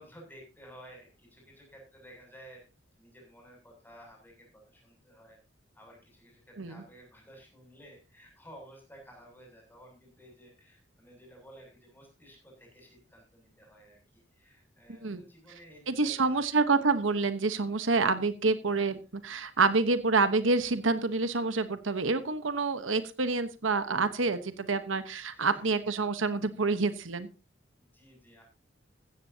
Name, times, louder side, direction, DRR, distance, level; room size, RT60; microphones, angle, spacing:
voice 1, 0.0-2.6 3.0-5.4 5.7-16.5 25.3-25.8 27.8-28.4, equal, 10° left, 1 dB, 7.5 m, -54 dB
voice 2, 15.9-27.3, right 3 dB, 85° right, 11 dB, 1.2 m, -27 dB
15.5 x 14.5 x 2.9 m, 0.29 s
head